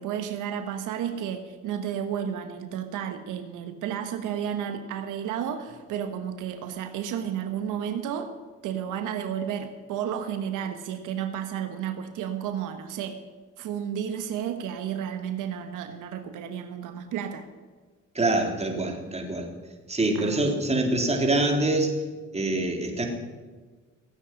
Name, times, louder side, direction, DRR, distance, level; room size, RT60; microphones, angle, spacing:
voice 1, 0.0-8.3 8.6-13.2 13.6-17.5 20.1-20.7, right 9 dB, 90° right, 7 dB, 1.3 m, -32 dB
voice 2, 18.2-19.5 19.9-21.9 22.3-23.1, right 2 dB, 20° right, 2 dB, 3.6 m, -25 dB
17.0 x 8.6 x 9.7 m, 1.4 s
cardioid pair, 90°, 30 cm